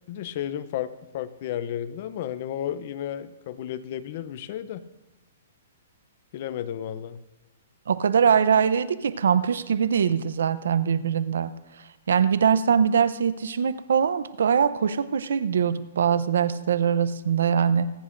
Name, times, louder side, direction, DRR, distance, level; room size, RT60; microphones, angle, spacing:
voice 1, 0.1-4.8 6.3-7.2, left 10 dB, 50° left, 14 dB, 0.6 m, -33 dB
voice 2, 7.9-11.5 12.1-17.9, right 7 dB, 80° right, 15 dB, 0.6 m, -22 dB
25.5 x 10.0 x 2.6 m, 1.0 s
hypercardioid pair, 150°, 0 cm